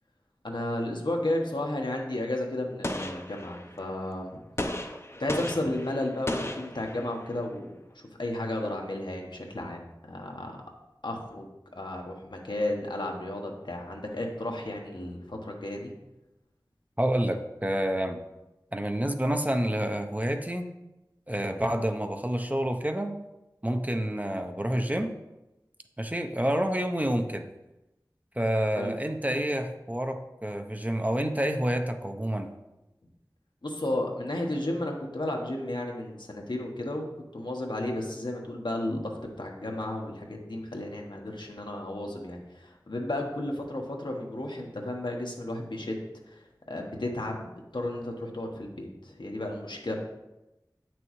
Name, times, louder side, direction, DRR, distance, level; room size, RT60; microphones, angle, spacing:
voice 1, 0.4-4.4 5.2-10.5 11.0-11.5 11.7-15.9 28.7-28.9 33.6-46.4 46.7-50.0, left 1 dB, 85° left, 0 dB, 1.1 m, -33 dB
Gunshot gunfire, 2.8-3.9 4.6-7.4, left 1 dB, 35° left, 0.6 m, -35 dB
voice 2, 17.0-18.2 18.7-20.7 21.3-23.2 23.6-25.1 26.0-27.5 28.4-32.5, right 1 dB, 20° right, 6 dB, 0.6 m, -28 dB
8.4 x 6.1 x 3.1 m, 0.98 s
wide cardioid pair, 40°, 8 cm